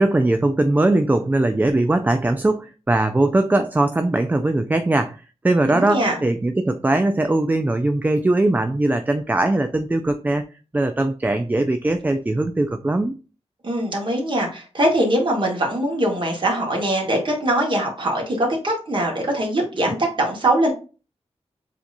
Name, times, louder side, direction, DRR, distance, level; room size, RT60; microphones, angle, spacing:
voice 1, 0.0-10.4 10.7-13.1, right 2 dB, 15° right, 8 dB, 0.3 m, -20 dB
voice 2, 5.7-6.2 13.6-20.7, right 1 dB, 45° right, 0 dB, 1.5 m, -22 dB
7.3 x 2.6 x 2.5 m, 0.35 s
wide cardioid pair, 120°, 11 cm